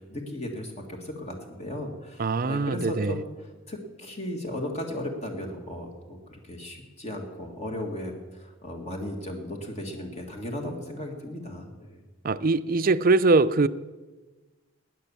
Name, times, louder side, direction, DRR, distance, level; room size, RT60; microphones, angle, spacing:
voice 1, 0.0-3.2 3.7-12.0, left 1 dB, 35° left, 1.9 m, -36 dB
voice 2, 2.2-3.2 12.2-13.7, right 3 dB, 45° right, 0.5 m, -22 dB
20.0 x 9.6 x 7.1 m
head